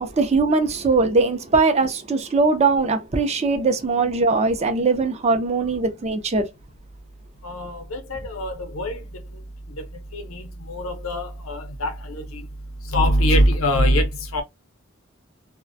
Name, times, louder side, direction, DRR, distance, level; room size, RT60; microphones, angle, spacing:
voice 1, 0.0-6.5, right 3 dB, 30° right, 0.4 m, -20 dB
voice 2, 7.4-9.0 10.1-12.4 12.9-14.4, equal, 85° left, 0.6 m, -23 dB
2.4 x 2.1 x 2.5 m
head